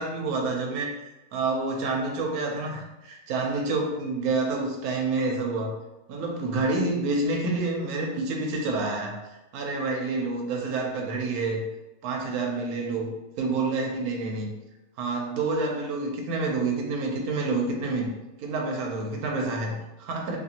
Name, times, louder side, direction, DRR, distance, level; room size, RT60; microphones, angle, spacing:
voice 1, 0.0-5.7 6.1-9.2 9.5-11.6 12.0-13.1 13.4-14.5 15.0-18.1 18.4-20.4, right 3 dB, 80° right, 1 dB, 1.0 m, -28 dB
2.7 x 2.5 x 2.8 m, 0.98 s
omnidirectional pair, 1.6 m